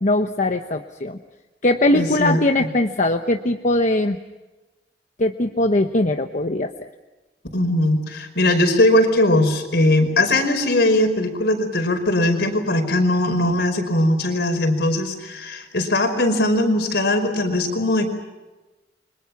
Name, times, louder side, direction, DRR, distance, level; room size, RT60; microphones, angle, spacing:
voice 1, 0.0-1.2 1.6-4.2 5.2-6.7, left 2 dB, 45° left, 5 dB, 1.0 m, -20 dB
voice 2, 1.9-2.7 7.5-18.1, left 1 dB, 65° left, 6 dB, 5.1 m, -20 dB
30.0 x 25.0 x 6.0 m, 1.1 s
head